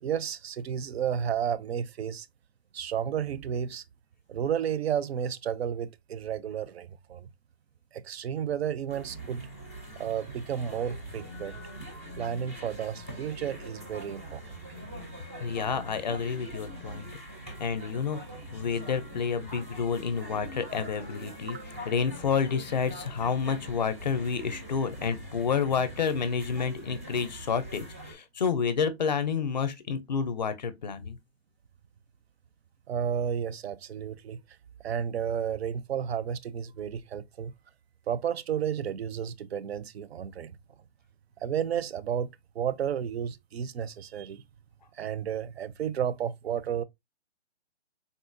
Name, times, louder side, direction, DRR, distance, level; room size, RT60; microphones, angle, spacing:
voice 1, 0.0-2.3 2.7-3.8 4.3-7.3 7.9-9.4 10.0-11.6 12.2-14.6 21.5-21.6 32.9-34.4 34.8-37.5 38.1-40.6 41.4-42.3 42.6-44.4 45.0-46.8, right 8 dB, 65° right, 0.5 m, -32 dB
sound 1, 8.9-28.1, equal, 15° right, 0.4 m, -43 dB
voice 2, 15.4-17.1 17.4-18.2 18.5-21.6 21.9-31.2, left 6 dB, 40° left, 0.5 m, -29 dB
3.7 x 2.2 x 2.4 m
hypercardioid pair, 160°, 34 cm